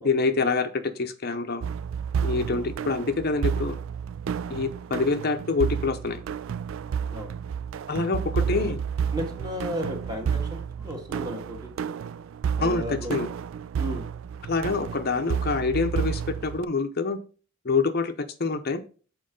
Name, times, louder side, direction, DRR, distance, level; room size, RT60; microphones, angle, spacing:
voice 1, 0.0-1.6 2.2-3.8 4.5-6.2 7.9-8.8 12.6-13.3 14.5-17.2 17.6-18.1 18.4-18.8, left 4 dB, 50° left, 7 dB, 0.7 m, -26 dB
sound 1, 1.6-16.6, right 7 dB, 70° right, 0.3 m, -31 dB
voice 2, 2.5-2.9 7.1-7.4 8.4-8.7 9.1-12.0 12.6-13.2 13.8-14.1, equal, 20° right, 2 dB, 1.7 m, -35 dB
7.7 x 4.6 x 5.2 m, 0.37 s
head